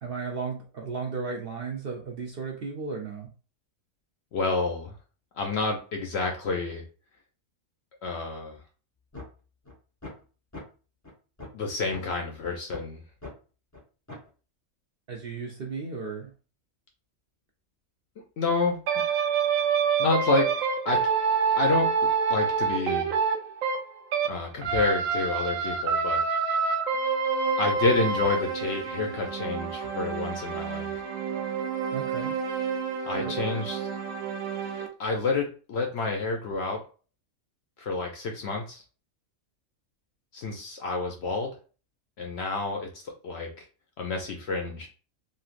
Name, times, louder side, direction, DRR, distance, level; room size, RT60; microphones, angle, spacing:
voice 1, 0.0-3.3 15.1-16.3 31.9-32.3 33.2-33.3, right 4 dB, 60° right, 1 dB, 0.6 m, -34 dB
voice 2, 4.3-4.9 5.3-6.8 8.0-8.6 11.5-13.0 18.4-18.8 20.0-20.5 20.8-21.1 21.6-21.9 22.3-23.1 24.3-26.2 27.6-30.9 33.0-33.9 35.0-36.8 37.8-38.8 40.3-41.5 42.2-43.6 44.0-44.9, left 3 dB, 65° left, 2 dB, 0.7 m, -29 dB
sound 1, 9.1-9.3 9.6-9.7 10.0-10.2 10.5-10.6 11.0-11.1 11.4-11.6 11.9-12.0 12.4-12.8 13.2-13.3 13.7-13.8 14.1-14.3, left 2 dB, 15° left, 0.7 m, -40 dB
sound 2, 18.9-24.3 24.6-34.9, right 6 dB, 80° right, 1.0 m, -27 dB
3.1 x 2.6 x 2.4 m, 0.35 s
omnidirectional pair, 1.4 m